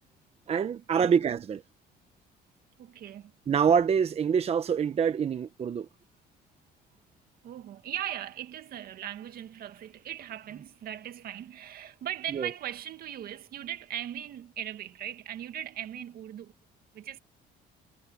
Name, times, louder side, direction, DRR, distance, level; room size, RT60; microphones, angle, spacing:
voice 1, 0.5-1.6 3.5-5.9 12.3-12.5, right 7 dB, 35° right, 1.0 m, -25 dB
voice 2, 2.8-3.3 7.4-16.5 16.9-17.2, right 11 dB, 60° right, 2.1 m, -39 dB
cardioid pair, 110°, 17 cm